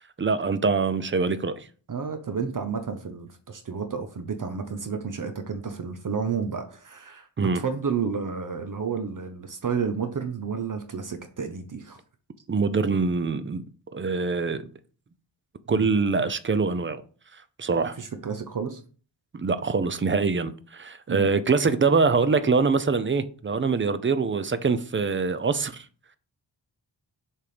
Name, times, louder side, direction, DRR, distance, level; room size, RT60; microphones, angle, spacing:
voice 1, 0.2-1.5 7.4-7.6 12.5-13.6 13.9-14.6 15.7-17.0 17.6-18.0 19.3-25.8, right 4 dB, 25° right, 0.5 m, -24 dB
voice 2, 1.9-12.0 15.7-15.9 18.0-18.8 21.1-21.3, right 6 dB, 45° right, 0.8 m, -31 dB
6.8 x 3.7 x 5.0 m
wide cardioid pair, 150°, 45 cm